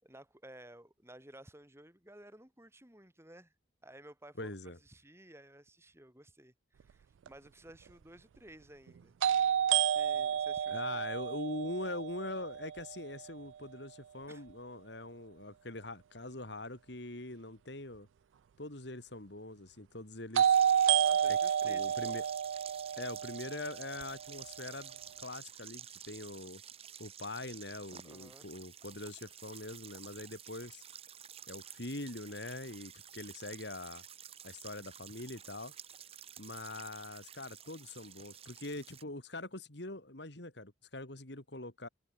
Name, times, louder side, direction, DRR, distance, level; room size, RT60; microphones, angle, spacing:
voice 1, 0.0-3.5 3.8-9.1 9.8-11.0 14.3-14.5 21.0-22.2 28.0-28.5, right 1 dB, 15° right, 5.5 m, -55 dB
voice 2, 4.4-4.8 10.7-18.1 18.6-20.6 21.3-21.4 21.6-22.2 23.0-26.6 27.0-30.8 31.5-34.0 34.4-35.7 36.4-41.9, left 2 dB, 65° left, 3.2 m, -43 dB
sound 1, 7.3-7.4 9.2-13.1 20.4-24.4, right 9 dB, 85° right, 0.3 m, -30 dB
sound 2, 20.4-39.0, right 9 dB, 30° right, 1.6 m, -51 dB
head